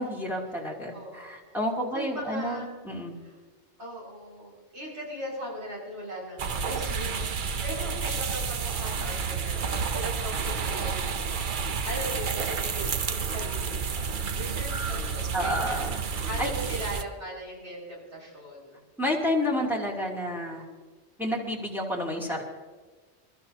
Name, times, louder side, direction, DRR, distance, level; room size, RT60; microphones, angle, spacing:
voice 1, 0.0-3.2 15.3-16.5 19.0-20.6 21.2-22.4, left 1 dB, ahead, -2 dB, 2.8 m, -30 dB
voice 2, 0.9-1.6 1.9-2.7 3.2-3.3 3.8-7.2 7.6-11.3 11.8-18.8, equal, 75° right, -5 dB, 6.2 m, -39 dB
sound 1, 6.4-17.0, right 5 dB, 50° right, 0.8 m, -30 dB
27.5 x 13.5 x 2.9 m, 1.4 s
omnidirectional pair, 1.2 m